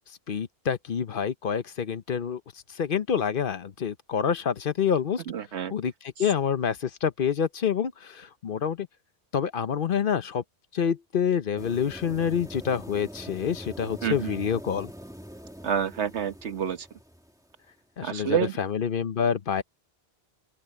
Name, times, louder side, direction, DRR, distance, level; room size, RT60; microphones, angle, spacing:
voice 1, 0.3-2.4 2.7-5.2 5.7-8.9 9.3-10.4 10.7-14.9 18.0-19.6, left 7 dB, 55° left, 0.9 m, -27 dB
voice 2, 5.3-5.7 14.0-14.4 15.6-16.9 18.0-18.6, right 8 dB, 85° right, 1.4 m, -28 dB
sound 1, 11.6-17.5, equal, 5° right, 2.0 m, -43 dB
open air
omnidirectional pair, 1.1 m